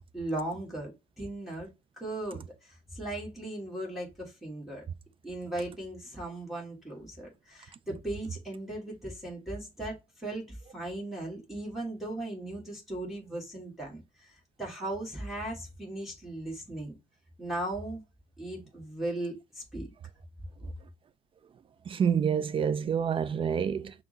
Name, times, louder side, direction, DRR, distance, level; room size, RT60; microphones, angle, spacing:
voice 1, 0.1-1.7 2.0-4.8 5.2-16.9 17.4-18.0 18.4-19.9, right 1 dB, ahead, 1.4 m, -37 dB
voice 2, 21.9-23.9, right 7 dB, 30° right, 0.4 m, -27 dB
5.7 x 2.0 x 3.8 m
cardioid pair, 110°, 17 cm